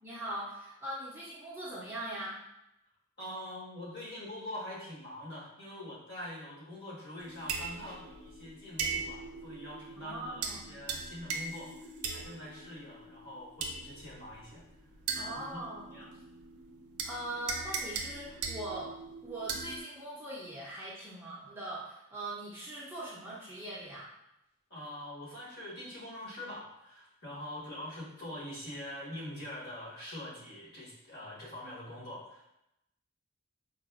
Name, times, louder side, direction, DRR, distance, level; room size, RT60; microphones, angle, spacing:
voice 1, 0.0-2.4 10.0-10.8 15.1-15.9 17.0-19.0 19.2-24.1, right 1 dB, 10° right, -7 dB, 0.5 m, -41 dB
voice 2, 3.2-11.7 12.1-14.6 15.2-15.6 15.9-16.1 24.7-32.4, left 1 dB, 50° left, -7 dB, 1.2 m, -44 dB
sound 1, 7.2-19.8, right 5 dB, 85° right, 0.4 m, -40 dB
4.1 x 2.3 x 2.3 m, 0.83 s
head